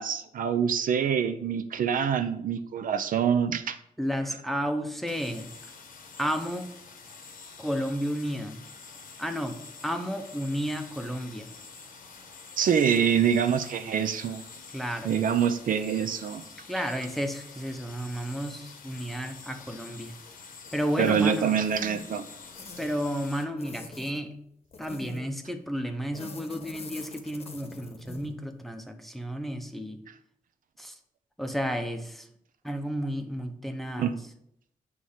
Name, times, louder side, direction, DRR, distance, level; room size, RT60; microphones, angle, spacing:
voice 1, 0.0-3.8 12.6-14.4 15.0-16.4 21.0-22.3 34.0-34.1, right 7 dB, 70° right, 10 dB, 0.5 m, -25 dB
voice 2, 4.0-5.5 6.2-6.7 7.6-8.6 9.2-11.5 14.7-15.1 16.7-20.1 20.7-21.6 22.8-24.3 24.8-30.0 30.8-31.0 31.4-32.3 32.6-34.2, equal, ahead, 5 dB, 0.6 m, -32 dB
sound 1, 5.0-23.4, left 4 dB, 75° left, 1.1 m, -47 dB
sound 2, 20.7-21.4 21.7-22.1 22.5-23.0 23.6-24.2 24.7-25.3 26.1-28.4, left 3 dB, 45° left, 0.9 m, -43 dB
8.3 x 3.1 x 5.6 m, 0.74 s
wide cardioid pair, 135°, 15 cm